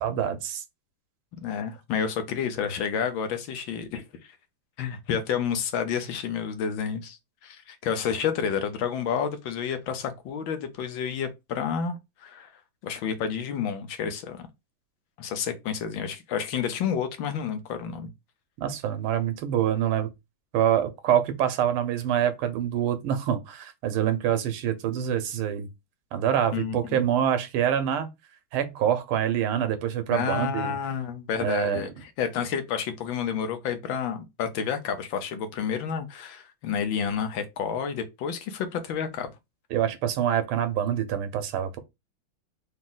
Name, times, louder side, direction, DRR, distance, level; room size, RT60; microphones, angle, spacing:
voice 1, 0.0-0.6 18.6-20.1 20.5-25.7 26.1-28.1 28.5-30.7 31.4-31.8 39.7-41.8, right 10 dB, 90° right, 1.7 m, -26 dB
voice 2, 1.4-4.3 4.8-7.2 7.4-12.5 12.8-14.5 15.2-18.1 26.5-26.8 30.1-39.3, left 7 dB, 75° left, 1.4 m, -30 dB
4.0 x 2.8 x 3.8 m
omnidirectional pair, 2.3 m